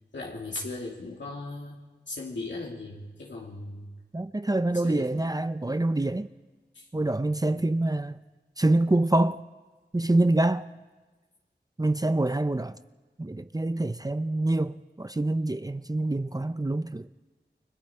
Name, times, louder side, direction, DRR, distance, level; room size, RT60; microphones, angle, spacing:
voice 1, 0.1-3.9 4.8-5.2 5.7-5.9 6.7-6.9 7.5-7.7, left 2 dB, 90° left, 2.6 m, -38 dB
voice 2, 4.1-6.3 6.9-8.2 8.6-9.4 9.9-10.7 11.8-12.8 13.2-17.1, right 2 dB, 20° right, 0.6 m, -26 dB
29.5 x 21.5 x 4.4 m
wide cardioid pair, 45°, 18 cm